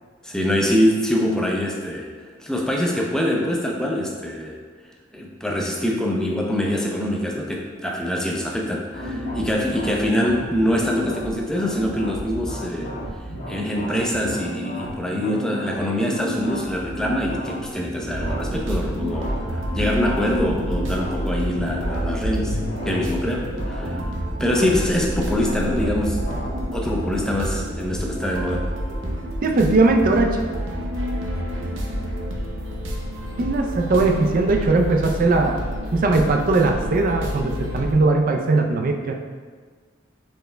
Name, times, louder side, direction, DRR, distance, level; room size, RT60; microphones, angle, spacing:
voice 1, 0.2-2.1 2.4-4.6 5.1-12.9 13.5-22.6 22.8-24.0 24.4-26.2 26.7-28.7, equal, 5° left, -1 dB, 0.5 m, -24 dB
sound 1, 8.9-27.2, equal, 50° left, 1.5 m, -32 dB
sound 2, 18.1-37.9, equal, 85° right, 0.7 m, -29 dB
voice 2, 29.4-30.4 33.4-35.6 35.9-39.1, right 3 dB, 50° right, 3 dB, 0.4 m, -19 dB
4.4 x 3.3 x 3.3 m, 1.5 s
head